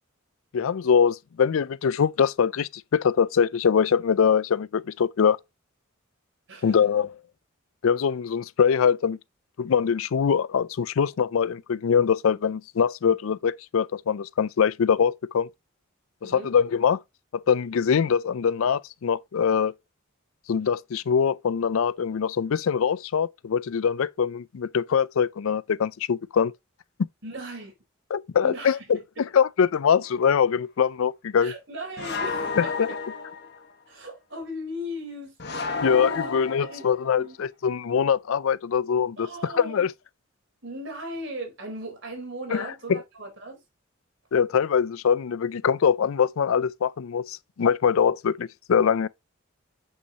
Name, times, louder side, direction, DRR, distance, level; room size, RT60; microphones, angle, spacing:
voice 1, 0.5-5.4 6.6-7.2 7.8-9.2 9.6-15.5 16.2-17.0 17.5-19.7 20.5-26.5 27.0-27.1 28.1-29.0 29.3-31.5 32.6-32.9 35.8-39.9 42.5-43.0 44.3-49.1, left 7 dB, 70° left, 0.4 m, -23 dB
voice 2, 16.2-16.5 27.2-27.7 28.4-28.8 29.2-29.3 31.4-33.0 33.9-35.3 36.2-36.3 36.6-36.8 37.2-37.3 39.2-39.9 40.6-43.6, equal, 55° right, 4.2 m, -37 dB
sound 1, 30.0-30.2 32.0-33.6 35.4-37.1, left 4 dB, 50° left, 1.2 m, -31 dB
7.9 x 6.5 x 2.8 m
head